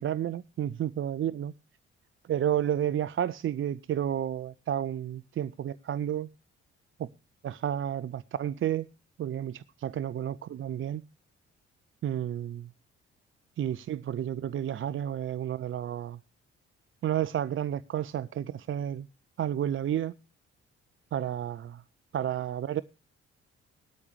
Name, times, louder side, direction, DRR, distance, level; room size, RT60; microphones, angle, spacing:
voice 1, 0.0-1.5 2.3-6.3 7.0-7.1 7.4-8.9 9.2-11.0 12.0-12.7 13.6-16.2 17.0-19.1 19.4-20.1 21.1-21.8 22.1-22.8, right 10 dB, 35° right, 0.6 m, -31 dB
17.5 x 13.0 x 3.2 m
figure-of-eight pair, 40°, 35 cm